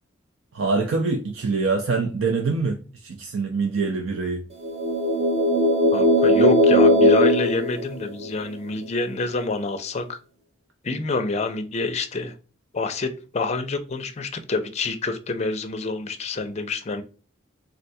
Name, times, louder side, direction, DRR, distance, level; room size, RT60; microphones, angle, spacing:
voice 1, 0.5-4.4, right 4 dB, 90° right, 0.5 m, -24 dB
sound 1, 4.6-8.5, equal, 30° right, 0.5 m, -18 dB
voice 2, 5.9-10.2 10.8-12.3 12.7-17.0, left 3 dB, 35° left, 0.4 m, -27 dB
3.7 x 2.2 x 2.6 m
head